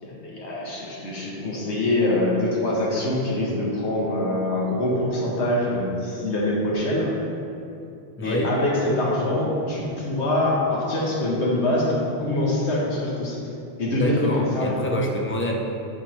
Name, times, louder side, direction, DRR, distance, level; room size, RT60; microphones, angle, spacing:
voice 1, 0.0-7.1 8.2-13.4 13.8-14.8, left 1 dB, 85° left, -4 dB, 1.3 m, -24 dB
voice 2, 8.2-8.5 13.9-15.6, equal, 15° left, -1 dB, 0.4 m, -27 dB
8.5 x 4.6 x 3.0 m, 2.7 s
omnidirectional pair, 1.1 m